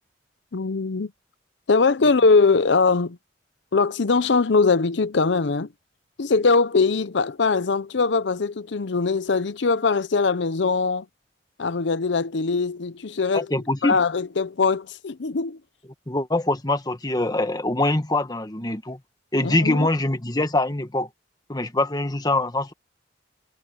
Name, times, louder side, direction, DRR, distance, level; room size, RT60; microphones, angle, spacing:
voice 1, 0.5-1.1 1.7-3.2 3.7-5.7 6.2-11.1 11.6-13.5 13.8-15.6 19.4-19.9, left 4 dB, 70° left, 0.6 m, -21 dB
voice 2, 13.3-14.0 16.1-19.0 19.3-21.1 21.5-22.7, left 2 dB, 20° left, 1.5 m, -23 dB
head